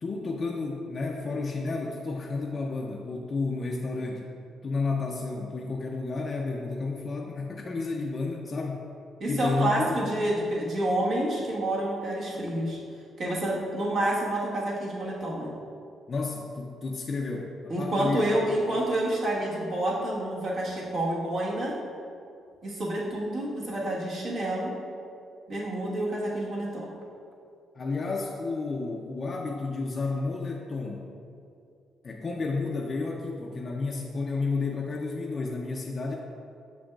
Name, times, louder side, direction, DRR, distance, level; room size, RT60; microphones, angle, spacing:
voice 1, 0.0-4.3 4.6-8.9 9.3-10.0 16.1-18.4 27.7-31.1 32.0-36.1, left 3 dB, 35° left, -1 dB, 0.4 m, -31 dB
voice 2, 9.2-12.8 13.2-15.5 17.7-21.7 22.6-24.7 25.5-26.9, right 1 dB, 60° right, -5 dB, 1.3 m, -28 dB
6.9 x 6.3 x 2.3 m, 2.5 s
cardioid pair, 125°, 0 cm